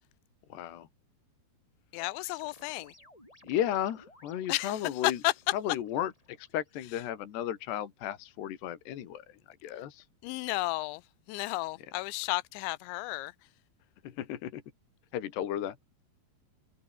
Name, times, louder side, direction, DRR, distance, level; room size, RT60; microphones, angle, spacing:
voice 1, 0.5-0.9 3.4-5.2 5.5-10.1 14.0-14.6 15.1-15.8, left 11 dB, 70° left, 4.2 m, -34 dB
voice 2, 1.9-2.9 4.5-5.3 10.2-11.0 11.3-13.3, left 21 dB, 85° left, 3.0 m, -32 dB
sound 1, 2.0-6.9, left 1 dB, 5° left, 7.2 m, -59 dB
omnidirectional pair, 5.2 m